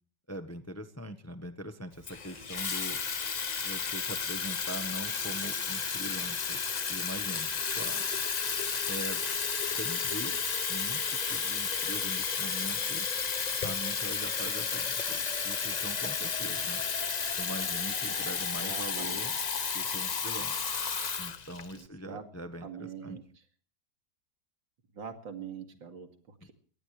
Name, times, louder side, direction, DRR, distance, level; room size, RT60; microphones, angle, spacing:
voice 1, 0.3-3.0 3.6-6.6 6.9-8.0 8.9-9.2 9.6-10.4 10.7-13.1 13.6-16.8 17.4-19.3 19.7-20.6 21.2-23.2, right 1 dB, 10° left, 8 dB, 0.8 m, -42 dB
Water tap faucet / Fill (with liquid), 2.0-21.8, left 5 dB, 50° left, 0.4 m, -32 dB
voice 2, 18.6-19.3 21.7-22.2 22.6-23.2 24.9-26.5, right 7 dB, 85° right, 5 dB, 3.0 m, -44 dB
23.5 x 18.5 x 3.3 m, 0.43 s
omnidirectional pair, 2.0 m